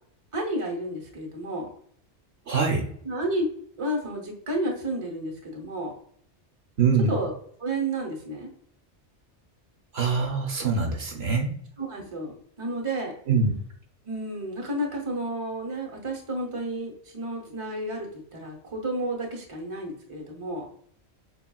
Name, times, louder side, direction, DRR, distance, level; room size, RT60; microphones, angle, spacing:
voice 1, 0.3-1.7 3.0-3.5 3.8-5.9 7.1-7.3 7.6-8.5 11.8-13.1 14.0-20.7, right 1 dB, 30° right, 1 dB, 0.9 m, -31 dB
voice 2, 2.5-2.8 6.8-7.1 9.9-11.5 13.3-13.6, right 5 dB, 65° right, 1 dB, 1.1 m, -24 dB
7.0 x 2.3 x 2.3 m, 0.64 s
omnidirectional pair, 1.2 m